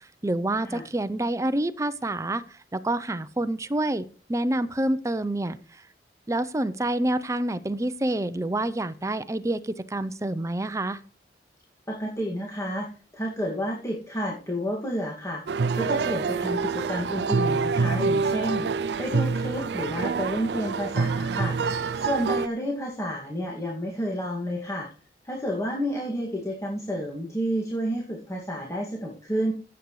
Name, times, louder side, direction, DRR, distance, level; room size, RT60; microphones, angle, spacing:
voice 1, 0.2-4.0 4.3-5.6 6.3-11.0, right 1 dB, 20° right, 14 dB, 0.5 m, -27 dB
voice 2, 11.9-21.6 22.0-24.9 25.2-29.5, equal, 15° left, -2 dB, 2.1 m, -30 dB
sound 1, 15.5-22.5, right 4 dB, 75° right, 0.4 m, -26 dB
15.5 x 8.2 x 3.2 m, 0.40 s
head